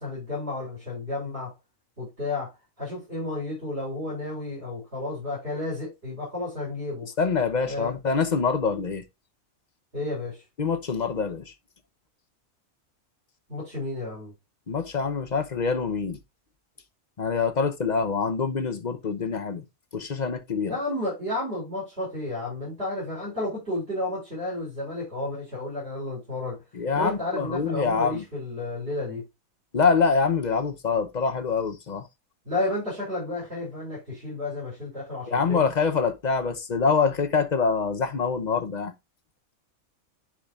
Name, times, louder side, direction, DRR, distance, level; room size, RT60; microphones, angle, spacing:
voice 1, 0.0-1.5 2.0-2.5 2.8-7.1 7.6-8.0 9.9-10.4 13.5-14.3 20.7-26.6 26.9-29.2 32.4-35.7, left 2 dB, 45° right, 5.6 m, -32 dB
voice 2, 7.2-9.0 10.6-11.5 14.7-16.2 17.2-19.6 19.9-20.7 26.7-28.2 29.7-32.0 35.3-38.9, left 5 dB, 35° left, 0.9 m, -25 dB
10.0 x 5.0 x 2.5 m
omnidirectional pair, 1.5 m